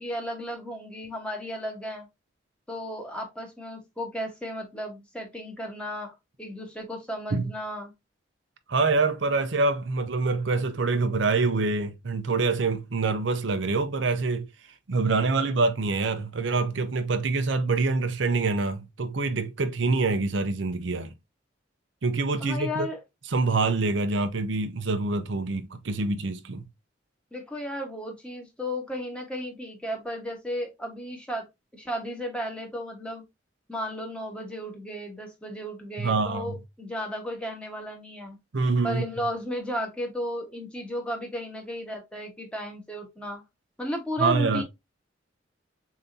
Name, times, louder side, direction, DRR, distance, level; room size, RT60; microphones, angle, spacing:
voice 1, 0.0-2.1 2.7-7.9 9.2-9.3 22.4-23.0 23.9-24.0 27.3-31.5 31.7-33.2 33.7-38.4 38.8-43.4 43.8-44.6, equal, 5° left, 1.2 m, -34 dB
voice 2, 8.7-14.5 14.9-21.1 22.0-22.9 23.3-26.6 36.0-36.6 38.5-39.0 44.2-44.6, right 3 dB, 70° right, 0.6 m, -25 dB
6.9 x 2.8 x 2.7 m
head